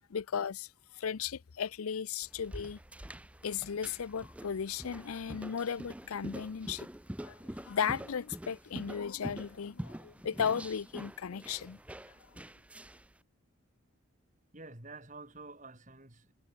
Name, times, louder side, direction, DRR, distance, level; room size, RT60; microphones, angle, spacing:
voice 1, 0.1-0.7 1.0-2.8 3.4-6.9 7.2-7.3 7.7-11.8, left 7 dB, 85° left, 0.5 m, -35 dB
sound 1, 2.2-13.1, right 1 dB, 5° right, 0.5 m, -46 dB
voice 2, 12.3-12.6 14.5-16.3, right 3 dB, 35° right, 4.8 m, -50 dB
head